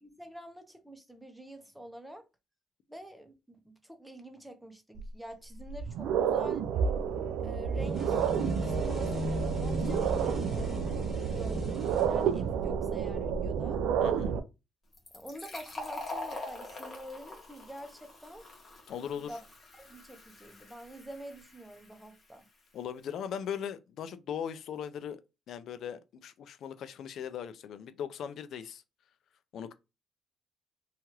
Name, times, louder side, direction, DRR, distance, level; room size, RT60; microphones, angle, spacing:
voice 1, 0.0-2.2 2.9-6.7 7.4-8.2 8.5-13.8 15.1-18.4 19.2-19.4 19.7-22.4, right 1 dB, 5° right, 0.7 m, -47 dB
sound 1, 5.0-5.1 5.6-14.4, right 7 dB, 90° right, 0.3 m, -30 dB
sound 2, 7.8-12.7, left 2 dB, 20° left, 1.5 m, -39 dB
voice 2, 14.0-14.3 18.9-19.4 22.7-25.2 25.5-28.8 29.5-29.7, left 8 dB, 70° left, 0.3 m, -39 dB
Fill (with liquid), 14.9-22.3, left 2 dB, 45° left, 1.2 m, -44 dB
2.8 x 2.3 x 3.0 m
cardioid pair, 90°, 0 cm